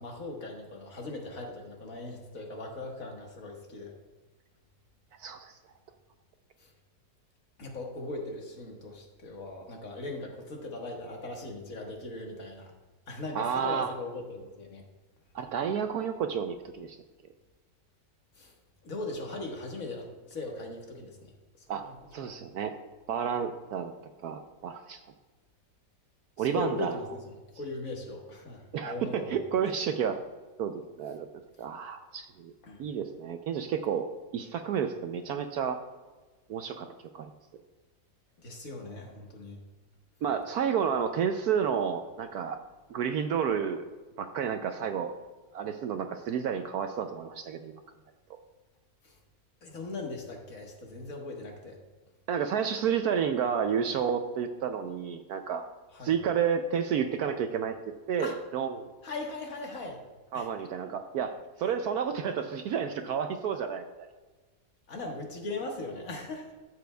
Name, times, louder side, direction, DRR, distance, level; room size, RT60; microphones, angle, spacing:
voice 1, 0.0-3.9 6.6-6.7 7.6-12.7 13.1-14.8 18.4-18.5 18.8-21.3 21.6-22.3 26.4-29.4 29.8-29.9 32.6-32.8 38.4-39.6 49.0-49.2 49.6-51.8 55.9-56.2 58.2-58.4 59.0-60.0 60.3-60.5 64.9-66.6, left 2 dB, 50° left, 1 dB, 1.8 m, -39 dB
voice 2, 5.2-5.6 13.3-13.9 15.3-17.0 21.7-21.8 22.1-22.7 23.1-23.9 24.2-25.0 26.4-27.0 28.7-30.2 30.6-31.3 31.6-32.5 32.8-34.1 34.3-35.8 36.5-36.9 37.1-37.3 40.2-42.6 42.9-43.8 44.2-45.1 45.5-47.8 52.3-55.6 56.0-58.9 60.3-64.1, right 7 dB, 75° right, 7 dB, 0.9 m, -31 dB
13.0 x 7.8 x 2.3 m, 1.3 s
omnidirectional pair, 2.0 m